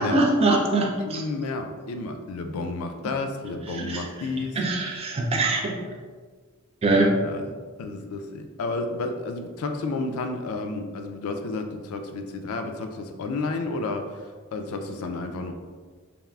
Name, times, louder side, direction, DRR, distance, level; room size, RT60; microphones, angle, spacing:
voice 1, 0.0-1.2 3.7-4.1 4.6-5.9 6.8-7.1, right 2 dB, 30° right, 0 dB, 0.3 m, -23 dB
voice 2, 1.0-4.6 6.9-7.5 7.8-14.2 14.5-15.5, left 3 dB, 85° left, 5 dB, 0.3 m, -31 dB
3.4 x 2.4 x 2.2 m, 1.5 s
head